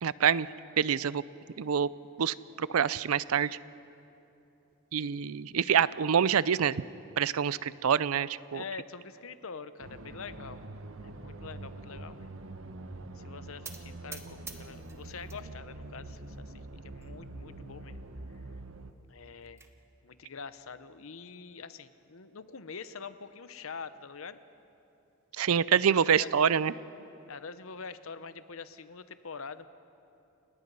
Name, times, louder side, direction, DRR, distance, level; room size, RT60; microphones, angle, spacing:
voice 1, 0.0-0.5 0.8-1.2 1.6-1.9 2.2-3.6 4.9-6.8 7.2-8.6 25.4-26.7, right 7 dB, 85° right, 19 dB, 0.5 m, -26 dB
voice 2, 8.5-10.7 11.0-12.5 13.1-16.5 16.8-18.0 18.3-18.4 19.1-19.6 20.0-24.4 25.3-25.5 25.7-26.5 27.3-29.7, left 5 dB, 70° left, 13 dB, 0.8 m, -45 dB
sound 1, 9.8-18.9, right 2 dB, 65° right, 1.1 m, -45 dB
sound 2, 13.6-15.4 15.8-16.4 17.0-17.1 17.4-17.5 17.9-18.0 19.1-19.7, right 4 dB, 10° right, 1.1 m, -47 dB
29.5 x 18.0 x 5.5 m, 2.9 s
head